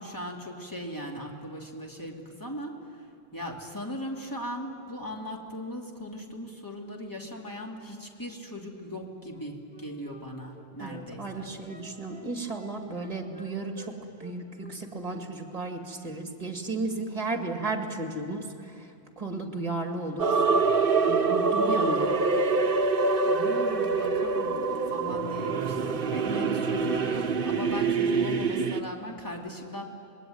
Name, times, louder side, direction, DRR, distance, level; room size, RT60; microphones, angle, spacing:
voice 1, 0.0-3.0 3.3-11.5 23.3-24.5 24.9-29.8, equal, 20° left, -1 dB, 2.8 m, -38 dB
Wind instrument woodwind instrument, 9.2-13.9 14.2-15.2 15.5-15.7, right 1 dB, 5° right, 4.4 m, -50 dB
voice 2, 10.8-13.9 14.2-18.5 19.2-20.4 21.1-22.1, right 2 dB, 35° right, 3 dB, 2.2 m, -34 dB
sound 1, 20.2-28.8, right 4 dB, 60° right, 1.2 m, -25 dB
26.0 x 21.0 x 9.4 m, 2.5 s
omnidirectional pair, 1.1 m